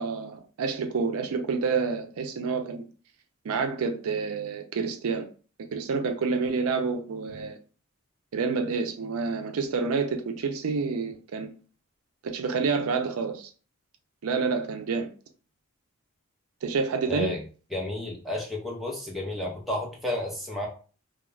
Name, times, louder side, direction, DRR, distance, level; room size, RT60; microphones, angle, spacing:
voice 1, 0.0-2.8 3.4-5.3 5.7-7.6 8.3-11.5 12.2-13.5 14.2-15.1 16.6-17.3, right 5 dB, 80° right, 0.4 m, -28 dB
voice 2, 17.1-17.4 17.7-20.7, left 1 dB, ahead, 0.5 m, -31 dB
2.3 x 2.0 x 3.1 m
head